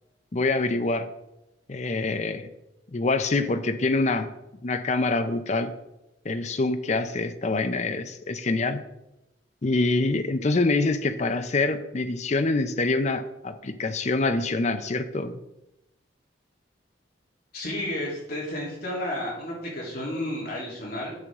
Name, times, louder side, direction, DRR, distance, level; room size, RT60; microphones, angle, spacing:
voice 1, 0.3-1.1 1.7-2.5 2.9-4.3 4.6-5.7 6.2-8.8 9.6-15.4, left 3 dB, 40° left, 10 dB, 0.6 m, -25 dB
voice 2, 17.5-21.1, left 1 dB, 55° left, -5 dB, 3.2 m, -32 dB
9.7 x 6.8 x 3.6 m, 0.91 s
head